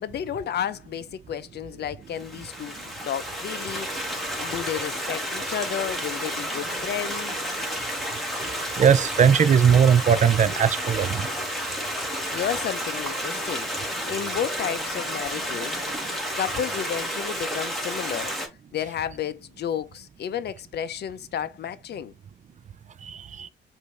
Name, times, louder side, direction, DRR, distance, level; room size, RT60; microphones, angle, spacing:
voice 1, 0.0-4.1 4.4-7.5 12.0-13.7 14.1-15.8 16.4-18.3 18.7-22.1, left 9 dB, 55° left, 0.6 m, -32 dB
Stream, 2.2-18.5, equal, ahead, 1.8 m, -31 dB
voice 2, 8.8-11.3 23.0-23.5, right 7 dB, 40° right, 0.5 m, -19 dB
5.1 x 2.7 x 3.3 m
cardioid pair, 90°, 20 cm